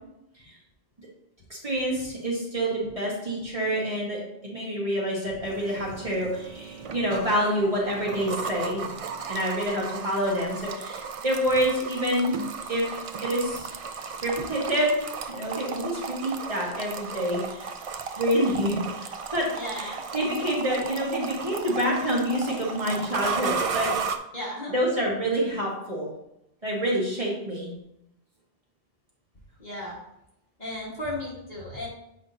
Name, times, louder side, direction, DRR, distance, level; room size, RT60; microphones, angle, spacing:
voice 1, 1.6-8.9 9.3-12.4 12.7-12.8 13.2-13.7 14.2-15.0 15.3-17.7 18.2-23.9 24.7-26.1 26.6-27.7, equal, 35° right, -5 dB, 1.7 m, -27 dB
sound 1, 5.4-24.2, right 5 dB, 55° right, 0.4 m, -35 dB
voice 2, 19.5-20.0 24.3-24.9 29.6-30.0 30.6-31.9, left 1 dB, 45° left, -5 dB, 1.9 m, -35 dB
7.5 x 5.0 x 2.8 m, 0.83 s
omnidirectional pair, 1.0 m